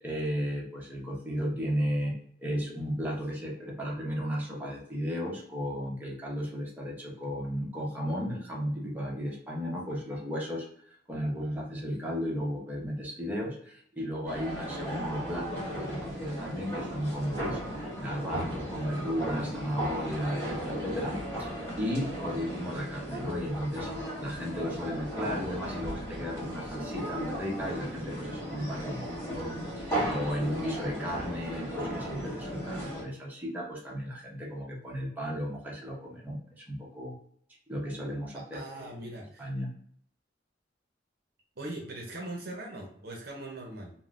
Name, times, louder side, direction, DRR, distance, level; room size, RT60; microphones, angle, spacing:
voice 1, 0.0-29.2 29.8-37.1 37.7-38.9 39.4-39.7, equal, 10° right, -4 dB, 0.8 m, -35 dB
sound 1, 14.2-33.0, equal, 15° left, 1.3 m, -36 dB
voice 2, 38.3-39.5 41.6-43.9, right 1 dB, 55° right, -1 dB, 0.6 m, -40 dB
3.6 x 2.0 x 2.4 m, 0.64 s
head